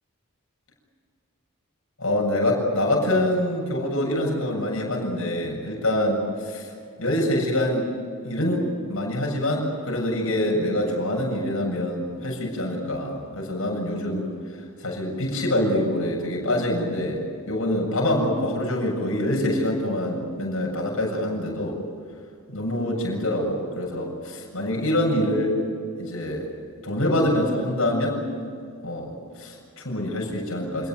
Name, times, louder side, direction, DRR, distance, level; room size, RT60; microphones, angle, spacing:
voice 1, 2.0-6.7 7.0-7.9 8.2-8.6 8.9-14.3 14.8-21.8 22.5-25.6 26.0-26.5 26.8-28.3 28.8-29.1 29.4-30.9, left 1 dB, 65° left, 0 dB, 7.4 m, -25 dB
28.5 x 18.5 x 9.6 m, 2.3 s
head